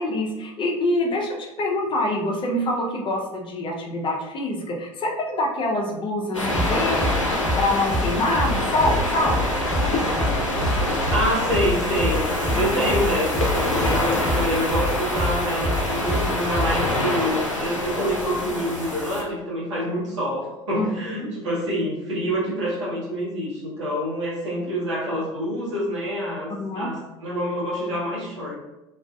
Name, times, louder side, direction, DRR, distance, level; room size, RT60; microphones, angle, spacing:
voice 1, 0.0-7.0 7.3-10.0 12.6-12.8 20.7-21.3 26.5-26.9, left 1 dB, 30° left, 1 dB, 0.5 m, -26 dB
sound 1, 6.3-19.2, left 1 dB, 90° left, 0.5 m, -25 dB
sound 2, 6.4-16.8, equal, 20° right, 1.2 m, -28 dB
voice 2, 11.0-12.3 12.5-28.6, equal, 70° right, -5 dB, 0.9 m, -27 dB
2.4 x 2.3 x 2.3 m, 0.97 s
figure-of-eight pair, 65°, 16 cm